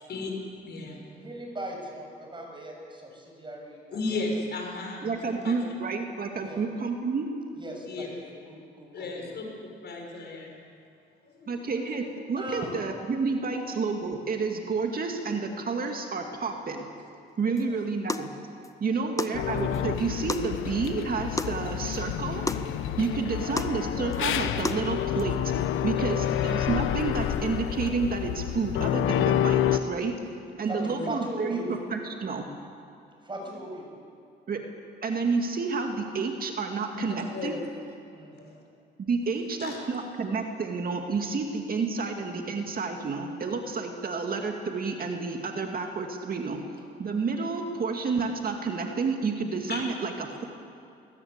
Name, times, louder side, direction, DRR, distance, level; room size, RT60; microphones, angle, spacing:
voice 1, 0.6-1.0 3.9-5.5 7.9-8.1 8.9-9.5 9.8-10.5 11.2-11.6 12.6-12.8 30.8-31.1 36.9-37.6 38.3-38.6 39.6-39.8 49.7-49.8, left 3 dB, 55° left, 1 dB, 6.2 m, -35 dB
voice 2, 1.1-4.2 6.4-6.6 7.5-9.4 12.4-12.7 17.5-17.8 18.8-19.2 26.1-26.3 30.3-31.7 33.2-34.0 38.1-38.5, right 1 dB, 25° right, 1 dB, 6.8 m, -40 dB
voice 3, 5.0-7.3 11.5-16.9 17.4-18.3 18.8-22.4 23.0-25.4 25.8-30.1 30.6-31.6 31.9-32.5 34.5-34.6 35.0-37.6 39.0-46.6 47.0-50.4, right 4 dB, 45° right, 3 dB, 2.2 m, -30 dB
sound 1, 17.6-17.7 18.1-18.3 18.6-18.7 19.2-19.4 19.7-19.8 20.3-20.5 20.8-20.9 21.4-21.6 21.9-22.0 22.5-22.7 23.0-23.1 23.6-23.8 24.1-24.2 24.6-24.8 25.2-25.3, left 2 dB, 15° left, 1.1 m, -31 dB
sound 2, 19.3-29.8, left 11 dB, 85° left, 0.9 m, -28 dB
21.5 x 19.5 x 8.2 m, 2.4 s
cardioid pair, 90°, 20 cm